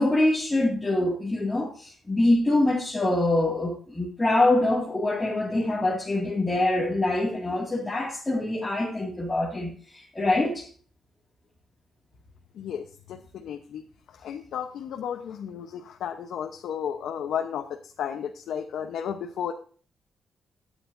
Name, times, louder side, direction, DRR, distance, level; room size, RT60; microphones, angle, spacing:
voice 1, 0.0-10.7, left 2 dB, 10° left, 2.1 m, -24 dB
voice 2, 12.5-13.8 14.1-19.5, left 8 dB, 80° left, 0.9 m, -33 dB
13.0 x 9.2 x 2.6 m
wide cardioid pair, 175°, 0 cm